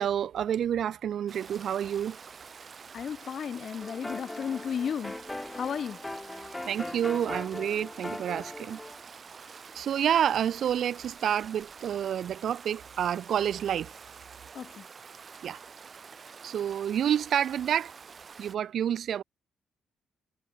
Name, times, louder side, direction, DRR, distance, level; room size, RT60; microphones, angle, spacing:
voice 1, 0.0-2.2 6.6-8.8 9.7-14.0 15.4-15.6 16.4-17.9 18.4-19.2, right 9 dB, 65° right, 1.1 m, -29 dB
Stream, 1.3-18.6, right 5 dB, 40° right, 7.0 m, -48 dB
voice 2, 2.9-5.1 5.5-6.0 14.5-14.8, left 7 dB, 55° left, 0.7 m, -33 dB
sound 1, 3.8-9.0, left 2 dB, 10° left, 2.1 m, -40 dB
cardioid pair, 90°, 0 cm